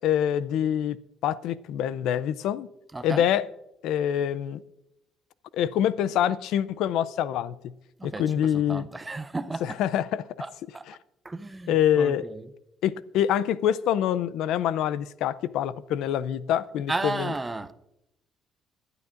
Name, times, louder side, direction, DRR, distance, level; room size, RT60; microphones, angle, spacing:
voice 1, 0.0-1.0 1.2-2.7 3.0-3.4 3.8-4.6 5.5-7.7 8.0-8.9 9.6-10.2 10.9-11.0 11.7-12.3 12.8-17.3, left 10 dB, 75° left, 17 dB, 0.5 m, -25 dB
voice 2, 2.9-3.3 8.0-9.8 10.4-10.8 11.2-12.4 16.9-17.7, right 2 dB, 10° right, 13 dB, 0.5 m, -34 dB
21.5 x 11.0 x 2.5 m, 0.88 s
cardioid pair, 165°, 0 cm